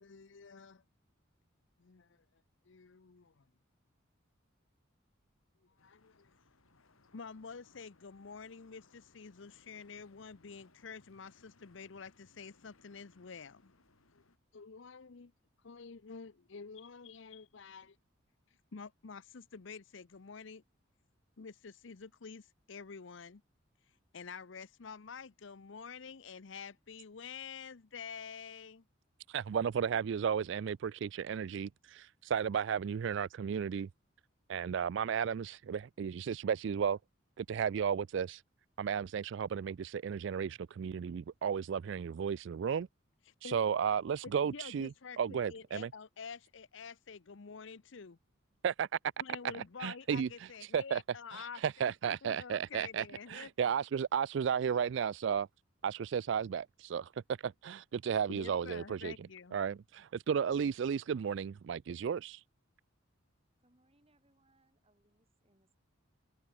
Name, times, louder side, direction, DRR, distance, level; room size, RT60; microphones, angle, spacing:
voice 1, 0.0-0.8 1.8-2.2 2.7-3.4 5.6-6.3 7.1-13.7 14.1-14.2 14.5-15.3 15.6-18.0 18.7-20.6 21.4-23.4 24.1-28.8 43.4-43.6 44.4-48.2 49.2-53.8 58.3-59.6, left 5 dB, 65° left, 0.7 m, -48 dB
sound 1, 5.8-14.4, left 3 dB, 90° left, 2.1 m, -67 dB
voice 2, 29.3-33.9 34.5-37.0 37.4-38.4 38.8-42.9 43.4-44.9 45.2-45.9 48.6-48.9 49.5-51.0 51.3-55.5 55.8-62.4, right 7 dB, 60° right, 0.3 m, -34 dB
voice 3, 63.6-65.8, right 1 dB, 30° right, 4.6 m, -72 dB
open air
head